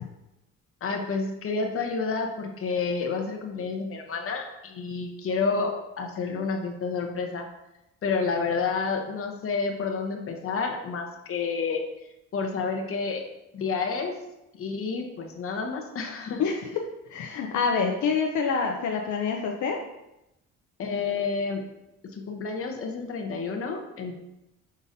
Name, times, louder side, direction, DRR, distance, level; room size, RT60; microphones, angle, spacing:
voice 1, 0.8-7.5 8.0-11.8 12.3-13.2 13.5-14.1 14.6-16.4 20.8-21.6 22.1-24.1, left 4 dB, 45° left, 3 dB, 0.9 m, -29 dB
voice 2, 17.1-19.8, left 5 dB, 75° left, 1 dB, 0.6 m, -26 dB
5.2 x 3.8 x 2.7 m, 0.90 s
cardioid pair, 90°, 30 cm